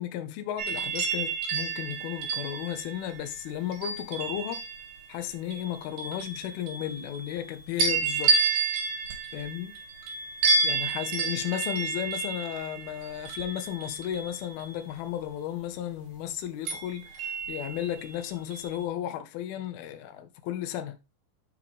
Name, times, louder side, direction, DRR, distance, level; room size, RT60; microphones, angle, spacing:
voice 1, 0.0-4.6 5.1-8.4 9.3-9.7 10.6-21.0, left 11 dB, 75° left, 2.7 m, -34 dB
sound 1, 0.6-4.9 5.5-7.4 7.8-14.7 16.7-18.1 18.5-18.8, right 4 dB, 55° right, 3.9 m, -30 dB
7.4 x 6.2 x 3.5 m
omnidirectional pair, 4.5 m